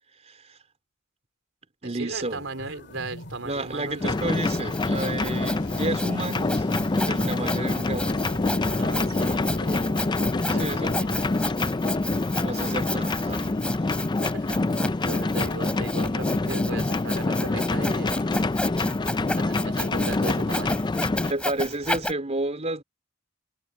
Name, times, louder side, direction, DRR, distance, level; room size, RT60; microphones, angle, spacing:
voice 1, 0.2-0.6 1.8-2.4 3.4-6.7 7.0-8.1 10.6-11.0 12.3-13.5 21.3-22.8, right 2 dB, 35° right, 3.9 m, -31 dB
voice 2, 1.9-4.3 7.2-7.4 8.8-9.9 10.4-11.3 14.2-18.2 19.3-20.8, right 2 dB, 70° right, 4.4 m, -37 dB
sound 1, 2.1-11.3, left 2 dB, 60° left, 2.2 m, -40 dB
sound 2, 4.0-21.3, left 2 dB, 20° left, 0.4 m, -26 dB
Sawing, 4.1-22.1, left 1 dB, 5° left, 4.7 m, -33 dB
head